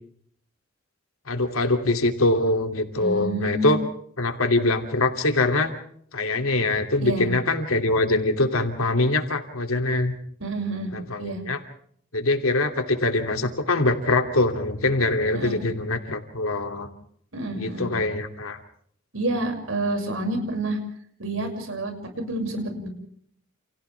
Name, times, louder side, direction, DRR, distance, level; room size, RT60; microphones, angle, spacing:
voice 1, 1.3-3.8 4.2-5.7 6.1-10.1 10.9-11.6 12.1-16.9 17.6-18.6, left 2 dB, 90° left, 5 dB, 2.9 m, -23 dB
voice 2, 3.0-3.7 7.0-7.3 10.4-10.9 11.2-11.4 15.3-15.6 17.3-17.9 19.1-20.8 21.2-22.9, right 2 dB, 70° right, 4 dB, 6.5 m, -28 dB
30.0 x 29.5 x 3.5 m, 0.64 s
head